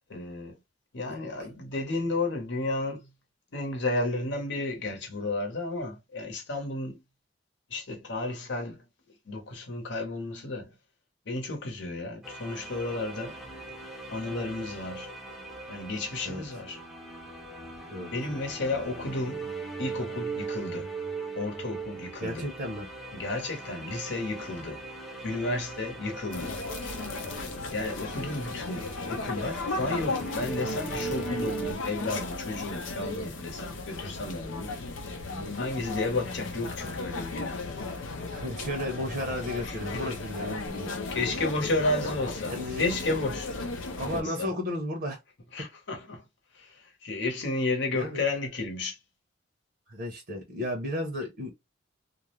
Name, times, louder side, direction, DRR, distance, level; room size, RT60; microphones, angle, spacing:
voice 1, 0.1-0.5 0.9-3.1 3.5-7.0 7.7-8.8 9.3-10.7 11.3-13.4 14.1-15.1 15.7-16.8 18.1-19.5 19.8-20.9 21.4-22.5 23.1-24.8 25.2-26.6 27.7-34.7 35.6-37.6 39.6-40.2 41.1-43.5 44.1-44.5 45.5-46.2 46.5-49.0, left 2 dB, 70° left, 0.9 m, -32 dB
sound 1, 12.2-31.7, right 3 dB, ahead, 0.6 m, -40 dB
voice 2, 22.2-22.9 35.3-35.6 38.3-40.9 42.5-42.8 44.0-45.2 47.9-48.2 49.9-51.5, left 1 dB, 55° right, 0.7 m, -34 dB
sound 2, 26.3-44.2, left 3 dB, 90° left, 0.6 m, -35 dB
2.4 x 2.0 x 3.0 m
head